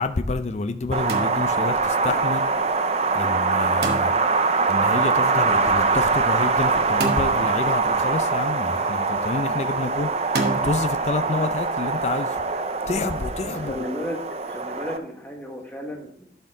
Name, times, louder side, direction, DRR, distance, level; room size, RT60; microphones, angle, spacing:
voice 1, 0.0-2.5 3.1-4.1 4.7-10.1 10.6-12.4 12.9-13.9, left 3 dB, 40° left, 10 dB, 0.4 m, -28 dB
Wind, 0.9-15.0, right 4 dB, 35° right, 0.5 m, -23 dB
sound 1, 1.1-1.8 3.8-4.5 7.0-7.9 10.3-10.7, right 3 dB, 70° right, 1.0 m, -29 dB
voice 2, 13.5-14.2 14.4-16.3, equal, 10° left, 0 dB, 1.3 m, -34 dB
11.5 x 4.5 x 3.7 m, 0.66 s
head